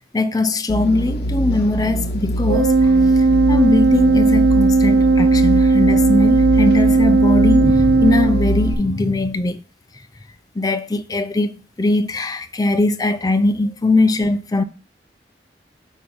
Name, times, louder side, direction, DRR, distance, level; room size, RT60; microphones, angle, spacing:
voice 1, 0.1-9.6 10.6-14.6, left 2 dB, 20° left, 0.4 m, -20 dB
sound 1, 0.7-8.7, right 1 dB, 65° left, 0.8 m, -23 dB
Organ, 2.5-9.0, right 3 dB, 80° right, 0.4 m, -16 dB
7.7 x 2.7 x 5.5 m
head